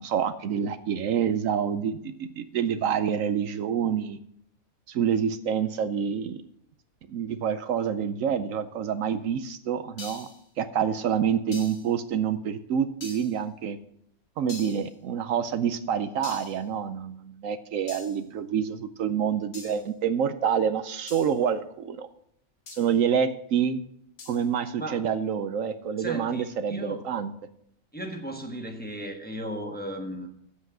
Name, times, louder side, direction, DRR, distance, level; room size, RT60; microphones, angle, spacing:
voice 1, 0.0-4.2 4.9-6.4 7.1-10.3 10.6-13.8 14.4-22.1 22.8-23.8 24.3-27.3, right 8 dB, 70° right, 11 dB, 1.0 m, -27 dB
sound 1, 10.0-10.4 11.5-11.9 13.0-13.4 14.5-14.9 16.2-16.6 17.9-18.2 19.5-19.9 21.1-21.4 22.7-22.9 24.2-24.5, left 4 dB, 85° left, 1.8 m, -43 dB
voice 2, 26.0-27.0 27.9-30.3, right 1 dB, 5° left, 3 dB, 1.1 m, -35 dB
8.5 x 7.7 x 6.1 m, 0.69 s
omnidirectional pair, 1.5 m